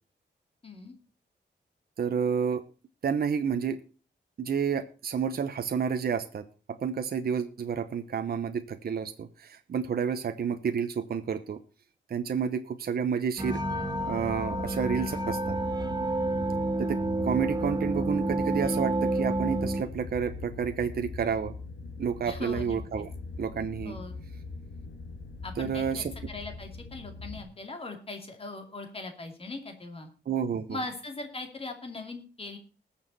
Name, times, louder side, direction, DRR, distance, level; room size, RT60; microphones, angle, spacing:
voice 1, 0.6-0.9 22.2-22.8 23.8-24.1 25.4-30.1 30.7-32.6, left 3 dB, 30° left, 5 dB, 2.6 m, -40 dB
voice 2, 2.0-2.6 3.0-3.8 4.4-6.5 6.8-11.6 12.1-13.6 14.1-15.6 16.8-21.5 22.0-23.1 23.4-24.0 25.6-26.1 30.3-30.8, right 7 dB, 55° right, 8 dB, 0.9 m, -30 dB
sound 1, 13.4-27.4, left 3 dB, 85° left, 2.9 m, -41 dB
sound 2, 13.4-19.8, right 2 dB, 20° right, 1.4 m, -29 dB
20.0 x 7.2 x 4.1 m, 0.35 s
wide cardioid pair, 160°, 19 cm